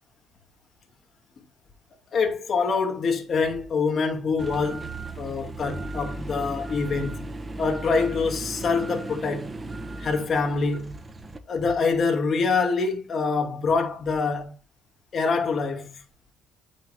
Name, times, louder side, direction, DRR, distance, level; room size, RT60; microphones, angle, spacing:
voice 1, 2.1-4.9 5.2-7.3 7.6-9.5 10.0-10.9 11.5-14.5 15.1-16.0, left 4 dB, 40° left, 2.5 m, -25 dB
sound 1, 4.4-11.4, right 2 dB, 20° right, 1.2 m, -36 dB
9.0 x 6.5 x 3.5 m
cardioid pair, 105°, 0 cm